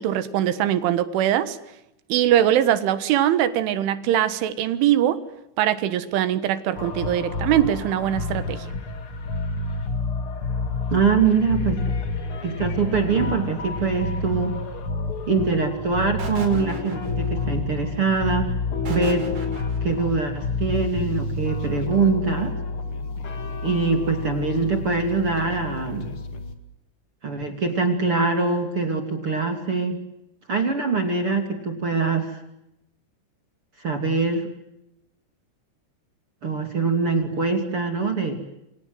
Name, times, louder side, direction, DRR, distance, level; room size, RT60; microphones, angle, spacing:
voice 1, 0.0-1.6 2.1-5.3 5.6-8.7, right 11 dB, 85° right, 13 dB, 4.0 m, -22 dB
sound 1, 6.8-26.5, left 3 dB, 40° left, 2.1 m, -29 dB
voice 2, 10.9-11.8 12.4-14.6 15.3-18.6 18.9-19.2 19.8-22.5 23.6-26.1 27.2-30.0 30.5-32.4 33.8-34.5 36.4-38.4, right 4 dB, 35° right, 5 dB, 2.9 m, -23 dB
sound 2, 16.2-17.4 18.9-20.0, right 4 dB, 60° right, 7.7 m, -36 dB
29.0 x 25.5 x 8.0 m, 0.86 s
omnidirectional pair, 5.4 m